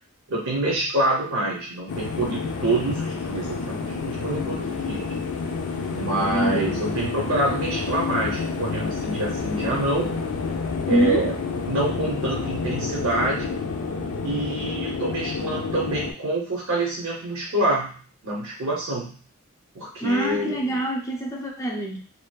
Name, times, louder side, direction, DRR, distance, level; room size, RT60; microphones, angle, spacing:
voice 1, 0.3-5.1 5.9-10.1 10.9-11.3 11.6-13.5 14.2-18.0 18.2-19.2 19.7-20.8, right 1 dB, 70° right, -4 dB, 0.6 m, -26 dB
sound 1, 1.9-16.1, left 4 dB, 80° left, 0.4 m, -29 dB
voice 2, 6.1-6.9 10.9-11.3 20.0-22.0, right 1 dB, 15° left, 0 dB, 0.4 m, -25 dB
2.6 x 2.2 x 2.2 m, 0.41 s
head